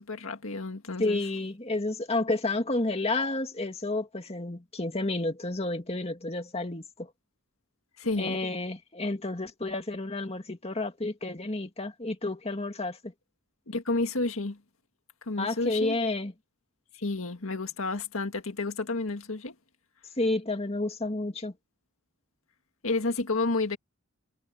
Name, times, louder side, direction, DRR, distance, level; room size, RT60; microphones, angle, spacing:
voice 1, 0.0-1.2 8.0-8.4 13.7-14.6 15.2-16.0 16.9-19.6 22.8-23.8, left 3 dB, 90° left, 1.9 m, -30 dB
voice 2, 1.0-7.1 8.2-13.1 15.4-16.3 20.2-21.5, left 2 dB, 30° left, 2.2 m, -30 dB
head